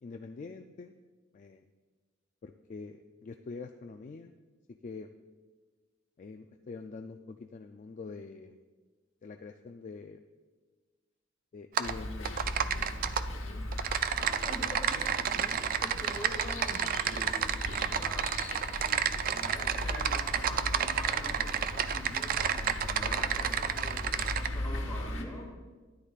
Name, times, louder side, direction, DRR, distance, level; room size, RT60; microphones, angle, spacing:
voice 1, 0.0-0.9 1.3-1.6 2.4-4.3 4.7-5.1 6.2-8.6 9.2-10.2 11.5-12.4, left 4 dB, 40° left, 5 dB, 0.3 m, -45 dB
sound 1, 11.8-25.2, left 1 dB, 90° left, 1.1 m, -38 dB
Typing, 11.8-11.9 12.3-13.2 13.7-24.5, right 8 dB, 45° right, 0.3 m, -31 dB
voice 2, 14.1-17.4 17.9-18.3 19.3-25.5, equal, 15° left, -2 dB, 2.1 m, -44 dB
13.5 x 9.9 x 2.4 m, 1.3 s
head